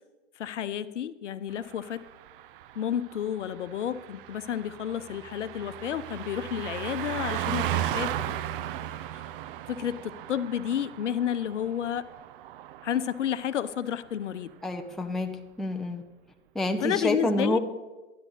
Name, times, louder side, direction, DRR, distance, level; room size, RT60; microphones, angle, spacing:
voice 1, 0.4-2.0 2.8-8.4 9.7-12.1 12.8-14.5 16.8-17.6, left 9 dB, 75° left, 14 dB, 0.8 m, -31 dB
Car passing by, 1.6-13.5 13.8-14.1, right 12 dB, 45° right, 0.7 m, -36 dB
voice 2, 14.6-15.3 15.6-16.0 16.5-17.6, left 1 dB, ahead, 4 dB, 0.6 m, -28 dB
13.0 x 11.0 x 4.0 m, 1.1 s
hypercardioid pair, 110°, 36 cm